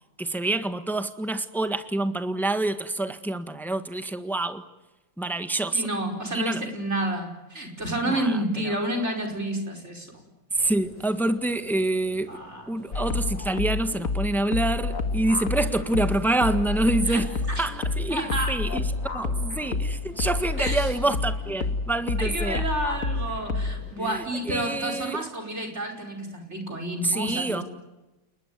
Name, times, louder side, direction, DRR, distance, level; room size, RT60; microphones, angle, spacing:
voice 1, 0.2-4.6 5.2-5.8 6.3-6.6 8.1-8.7 10.5-12.4 12.7-18.8 19.1-22.6 24.1-25.2 27.0-27.6, right 2 dB, ahead, 9 dB, 1.3 m, -27 dB
voice 2, 5.7-10.2 12.3-12.7 17.1-17.2 17.5-17.6 18.1-18.6 20.6-20.9 22.2-27.6, right 1 dB, 35° right, 2 dB, 5.5 m, -30 dB
sound 1, 10.5-24.7, right 1 dB, 75° right, 7.2 m, -48 dB
sound 2, 12.9-23.9, left 3 dB, 45° left, 2.0 m, -29 dB
29.0 x 20.5 x 9.4 m, 1.0 s
omnidirectional pair, 2.1 m